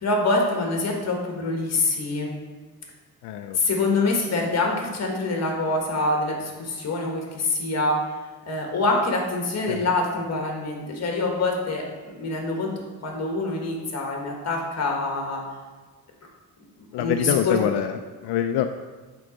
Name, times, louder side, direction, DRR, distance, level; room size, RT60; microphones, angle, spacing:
voice 1, 0.0-2.4 3.5-8.0 8.5-11.8 12.2-12.7 13.0-15.4 16.9-17.6, left 2 dB, 40° left, 0 dB, 1.5 m, -25 dB
voice 2, 3.2-3.6 9.7-9.9 16.9-18.7, left 10 dB, 85° left, 7 dB, 0.5 m, -25 dB
8.0 x 3.8 x 5.1 m, 1.3 s
cardioid pair, 155°, 40 cm